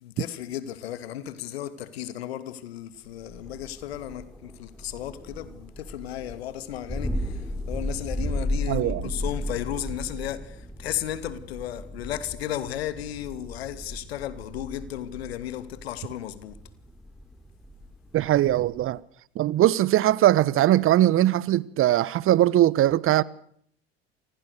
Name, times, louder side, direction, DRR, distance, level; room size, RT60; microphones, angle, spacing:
voice 1, 0.0-16.6, left 11 dB, 75° left, 2.6 m, -34 dB
Thunder, 3.2-19.0, left 1 dB, ahead, 4.5 m, -35 dB
voice 2, 8.7-9.1 18.1-19.0 19.3-23.2, right 13 dB, 45° right, 1.2 m, -20 dB
29.0 x 26.5 x 6.8 m
hypercardioid pair, 70°, 31 cm